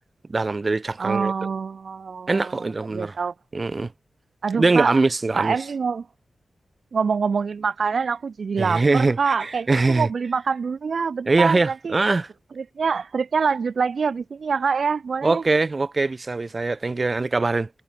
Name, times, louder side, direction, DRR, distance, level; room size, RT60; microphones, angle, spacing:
voice 1, 0.3-1.3 2.3-3.2 3.5-3.9 4.5-5.5 8.6-10.1 11.3-12.3 15.2-17.7, right 3 dB, 30° right, 1.5 m, -22 dB
voice 2, 1.0-3.3 4.4-5.0 5.3-6.1 6.9-12.0 12.6-15.4, right 5 dB, 60° right, 4.7 m, -25 dB
wide cardioid pair, 180°, 0 cm